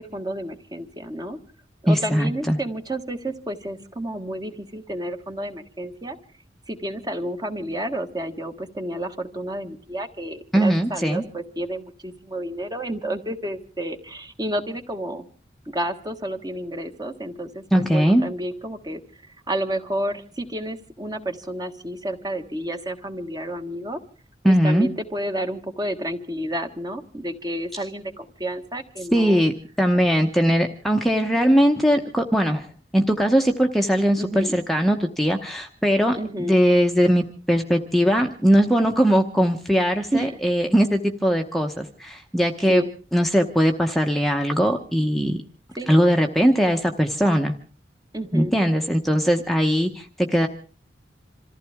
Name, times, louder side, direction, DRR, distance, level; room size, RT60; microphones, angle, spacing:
voice 1, 0.0-1.4 1.8-6.2 6.7-15.2 15.6-24.0 24.4-29.4 34.2-34.6 36.2-36.6 40.1-40.4 42.7-42.9 45.8-45.9 48.1-48.5, right 1 dB, 25° right, 6 dB, 1.5 m, -30 dB
voice 2, 1.9-2.6 10.5-11.2 17.7-18.2 24.4-24.9 29.1-29.5 29.8-32.7 32.9-42.8 43.1-45.4 45.9-47.6 48.3-50.5, equal, ahead, 3 dB, 0.9 m, -20 dB
27.0 x 15.0 x 3.6 m, 0.37 s
head